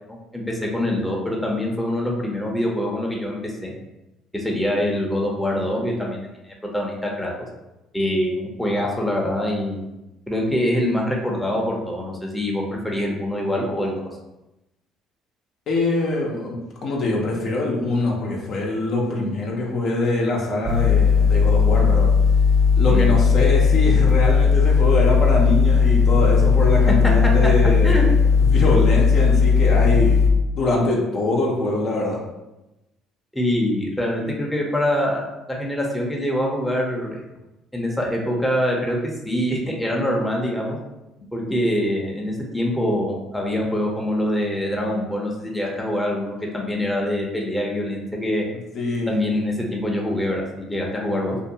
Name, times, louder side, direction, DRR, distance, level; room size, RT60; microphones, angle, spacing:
voice 1, 0.3-3.7 4.3-7.3 7.9-9.9 10.3-14.1 22.9-23.1 27.8-28.0 33.3-37.2 37.7-39.0 39.2-40.8 41.3-48.5 49.1-51.4, left 1 dB, 5° left, -2 dB, 0.7 m, -24 dB
voice 2, 15.7-22.1 22.7-28.1 28.4-30.3 30.5-32.2 48.7-49.1, left 2 dB, 55° left, -2 dB, 0.6 m, -23 dB
sound 1, 20.7-30.3, left 5 dB, 50° right, 0.6 m, -16 dB
2.6 x 2.2 x 2.7 m, 0.97 s
hypercardioid pair, 65°, 0 cm